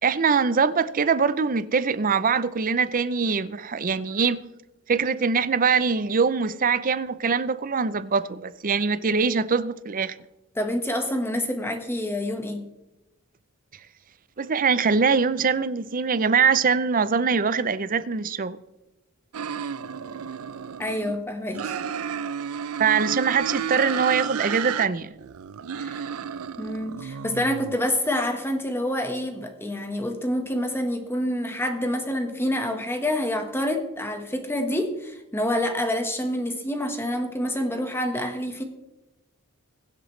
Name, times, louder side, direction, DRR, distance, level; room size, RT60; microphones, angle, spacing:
voice 1, 0.0-4.4 4.9-10.2 14.4-18.6 22.8-25.1, right 5 dB, 40° right, 0.6 m, -23 dB
voice 2, 10.5-12.6 20.8-21.8 25.8-26.1 26.6-38.6, left 1 dB, 10° left, 1.3 m, -27 dB
sound 1, 19.3-21.2 21.5-24.9 25.2-27.8, right 7 dB, 85° right, 0.5 m, -32 dB
22.5 x 7.9 x 3.2 m
head